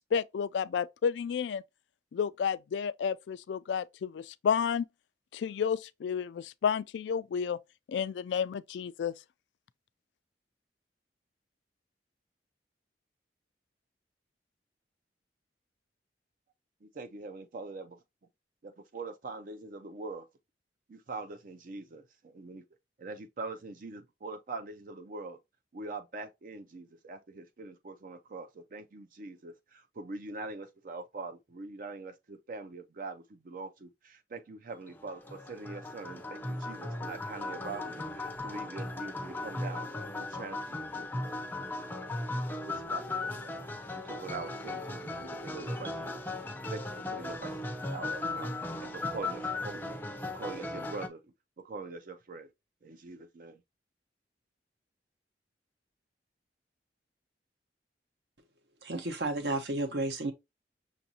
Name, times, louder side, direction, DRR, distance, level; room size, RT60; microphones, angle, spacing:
voice 1, 0.1-1.6 2.1-4.8 5.3-7.6 7.9-9.1, left 7 dB, 80° left, 0.3 m, -31 dB
voice 2, 16.8-18.0 18.6-20.3 20.9-22.6 23.0-25.4 25.7-39.9 40.2-41.1 42.5-43.7 44.0-46.2 46.7-46.8 47.1-49.9 50.3-51.2 51.6-52.5 52.8-53.6, right 3 dB, 50° right, 0.4 m, -43 dB
sound 1, 34.9-51.1, left 2 dB, 10° left, 0.5 m, -37 dB
voice 3, 58.8-60.3, right 2 dB, 70° right, 0.9 m, -32 dB
6.1 x 2.5 x 2.7 m
head